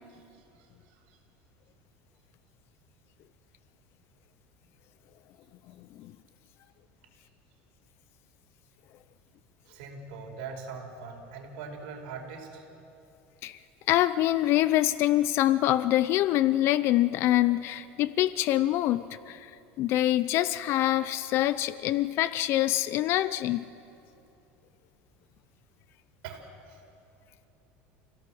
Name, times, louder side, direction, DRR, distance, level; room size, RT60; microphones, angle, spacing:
voice 1, 0.3-1.2 9.6-12.6 26.2-26.8, right 5 dB, 80° right, 2 dB, 4.7 m, -42 dB
voice 2, 13.9-19.5 19.8-23.6, left 14 dB, 50° left, 15 dB, 0.5 m, -25 dB
28.0 x 17.0 x 7.8 m, 2.8 s
cardioid pair, 145°, 5 cm